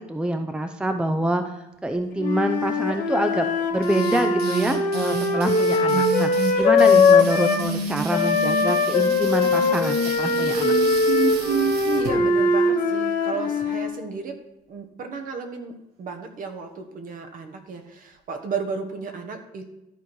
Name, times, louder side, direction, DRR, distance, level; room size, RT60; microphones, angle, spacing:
voice 1, 0.0-1.4 1.8-10.7, right 1 dB, 5° right, 7 dB, 0.6 m, -26 dB
Wind instrument woodwind instrument, 2.2-7.6 8.1-14.0, left 3 dB, 55° left, 1.9 m, -21 dB
sound 1, 3.8-12.1, right 4 dB, 75° right, 1.5 m, -29 dB
voice 2, 12.0-14.4 14.7-19.7, right 4 dB, 55° right, 6 dB, 1.4 m, -34 dB
13.0 x 4.4 x 4.7 m, 0.93 s
cardioid pair, 110°, 17 cm